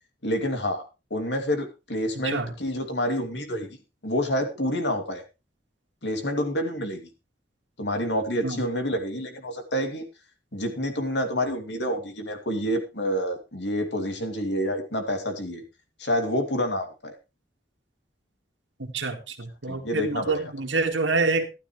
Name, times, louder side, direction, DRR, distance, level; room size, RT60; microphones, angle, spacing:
voice 1, 0.2-0.8 1.1-3.7 4.0-5.2 6.0-7.1 7.8-10.0 10.5-15.6 16.0-17.1 19.7-20.4, equal, 75° left, 5 dB, 2.8 m, -28 dB
voice 2, 18.8-21.4, right 3 dB, 90° right, 5 dB, 2.2 m, -27 dB
13.0 x 12.0 x 3.3 m, 0.28 s
head